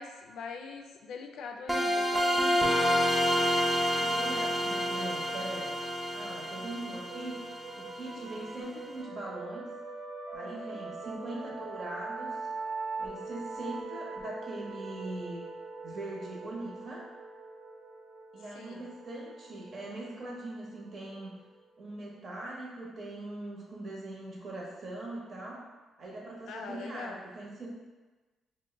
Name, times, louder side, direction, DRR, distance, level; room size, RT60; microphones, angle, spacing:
voice 1, 0.0-2.7 10.3-10.8 18.6-18.8 26.5-27.2, left 5 dB, 80° left, 3 dB, 0.3 m, -43 dB
sound 1, 1.7-8.4, equal, 10° right, 0.6 m, -29 dB
voice 2, 4.0-5.7 6.1-7.4 7.7-9.7 10.3-12.4 13.0-15.4 15.8-17.1 18.3-21.4 21.8-25.6 26.0-27.7, right 2 dB, 45° right, -3 dB, 0.8 m, -41 dB
sound 2, 7.1-22.4, right 3 dB, 65° right, 0.3 m, -42 dB
2.5 x 2.2 x 3.7 m, 1.2 s
cardioid pair, 90°, 0 cm